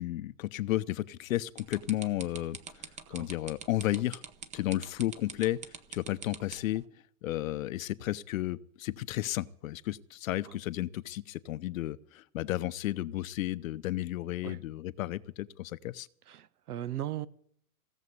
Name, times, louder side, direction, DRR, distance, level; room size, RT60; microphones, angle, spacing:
voice 1, 0.0-4.2 4.5-5.6 5.9-6.9 7.2-16.1, left 15 dB, 60° left, 0.8 m, -33 dB
sound 1, 1.6-6.8, right 6 dB, 15° right, 0.9 m, -43 dB
voice 2, 16.3-17.3, right 12 dB, 75° right, 1.2 m, -38 dB
17.0 x 7.4 x 9.4 m
hypercardioid pair, 130°, 45 cm